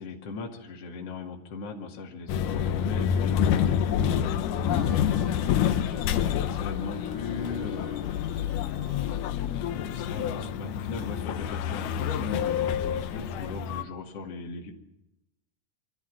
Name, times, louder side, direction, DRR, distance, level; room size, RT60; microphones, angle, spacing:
voice 1, 0.0-4.9 5.6-8.1 9.0-14.7, left 4 dB, 50° left, 0 dB, 3.2 m, -39 dB
sound 1, 2.1-12.0, equal, 80° right, 8.7 m, -52 dB
sound 2, 2.3-13.8, left 9 dB, 90° left, 2.5 m, -28 dB
Harmonica, 4.5-9.3, right 3 dB, 55° right, 7.1 m, -54 dB
24.5 x 14.0 x 7.6 m, 0.90 s
omnidirectional pair, 3.6 m